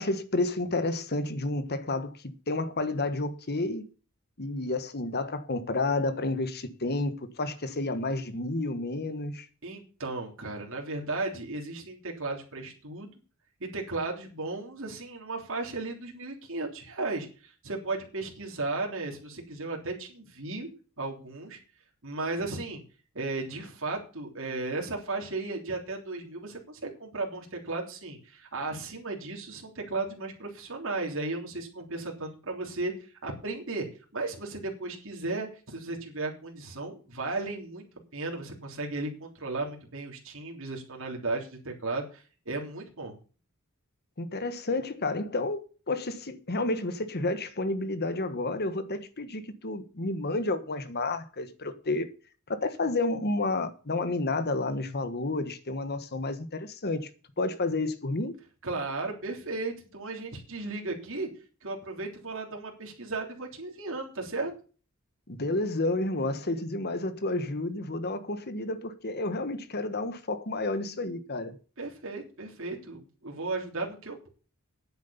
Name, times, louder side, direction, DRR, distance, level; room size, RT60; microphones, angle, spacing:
voice 1, 0.0-3.8 4.4-9.5 44.2-52.1 52.5-57.1 57.4-58.3 65.3-71.6, left 2 dB, 50° left, 1.4 m, -30 dB
voice 2, 9.6-13.1 13.6-20.7 21.0-21.6 22.0-22.8 23.1-33.9 34.1-37.8 38.1-43.1 58.6-61.3 61.6-64.5 71.8-74.3, right 3 dB, 65° right, 3.3 m, -35 dB
9.6 x 8.0 x 7.0 m
head